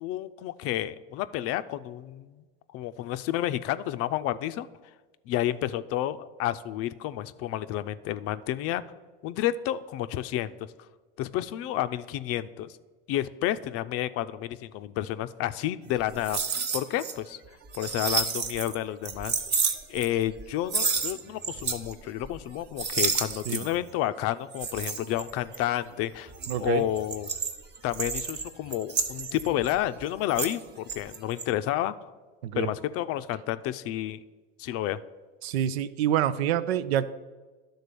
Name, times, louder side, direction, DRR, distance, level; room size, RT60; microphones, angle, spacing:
voice 1, 0.0-2.4 2.7-4.7 5.3-8.8 9.2-10.5 11.2-12.7 13.1-17.4 17.7-19.3 19.9-26.3 26.6-27.3 27.8-32.0 32.6-34.2 34.6-35.0, left 13 dB, 50° left, 13 dB, 0.5 m, -30 dB
sound 1, 16.0-17.1 17.4-18.7 19.0-20.4 20.7-21.9 22.2-22.5 22.8-23.9 24.5-25.7 26.2-30.6 30.9-31.4, right 5 dB, 35° right, 1.0 m, -30 dB
voice 2, 26.5-26.9 32.4-32.7 35.4-37.0, right 10 dB, 85° right, 15 dB, 0.5 m, -27 dB
11.5 x 3.9 x 6.8 m, 1.3 s
supercardioid pair, 100°, 31 cm